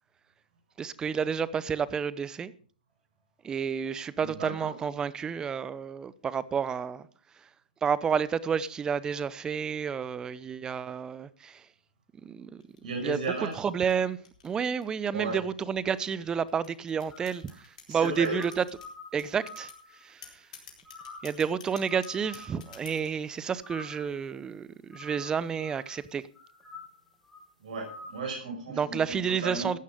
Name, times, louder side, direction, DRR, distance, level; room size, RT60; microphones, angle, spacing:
voice 1, 0.8-2.5 3.4-7.0 7.4-7.5 7.8-11.7 12.2-12.6 13.0-13.2 13.6-14.2 14.4-18.6 19.1-20.5 21.2-26.2 28.7-29.8, right 7 dB, 15° right, 0.7 m, -30 dB
voice 2, 4.2-4.7 12.8-13.6 15.1-15.4 17.9-18.4 27.6-29.7, right 3 dB, 60° right, 5.4 m, -34 dB
sound 1, 12.6-15.1 15.7-18.9 19.2-19.8 20.2-23.2, left 7 dB, 55° left, 4.3 m, -50 dB
sound 2, 17.1-17.6 18.0-20.5 20.8-21.4 21.8-23.1 23.6-24.3 24.9-26.1 26.3-27.5 27.8-28.2, left 2 dB, 5° left, 7.7 m, -48 dB
15.0 x 9.4 x 5.0 m
hypercardioid pair, 130°, 5 cm